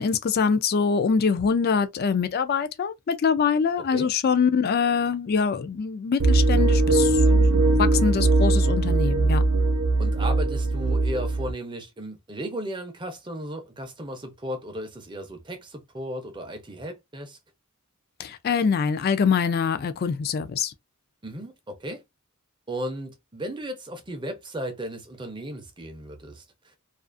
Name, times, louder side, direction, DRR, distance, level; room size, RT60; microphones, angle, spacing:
voice 1, 0.0-9.4 18.2-20.7, left 6 dB, 45° left, 0.3 m, -24 dB
sound 1, 6.2-11.5, right 2 dB, 75° right, 0.7 m, -20 dB
voice 2, 10.0-17.4 21.2-22.0 22.7-26.8, right 1 dB, 20° right, 0.5 m, -35 dB
2.4 x 2.4 x 2.4 m
head